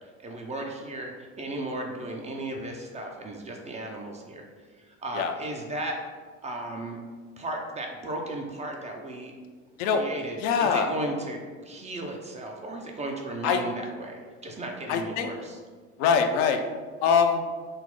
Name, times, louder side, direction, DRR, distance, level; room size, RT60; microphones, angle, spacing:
voice 1, 0.2-4.5 4.8-6.0 6.4-7.0 7.4-9.3 9.8-15.6, right 1 dB, 20° right, 1 dB, 0.4 m, -35 dB
voice 2, 10.4-10.9 13.4-13.6 14.9-15.3 16.0-16.6 17.0-17.4, left 6 dB, 55° left, 5 dB, 0.5 m, -23 dB
3.9 x 2.0 x 3.9 m, 1.5 s
figure-of-eight pair, 70°, 38 cm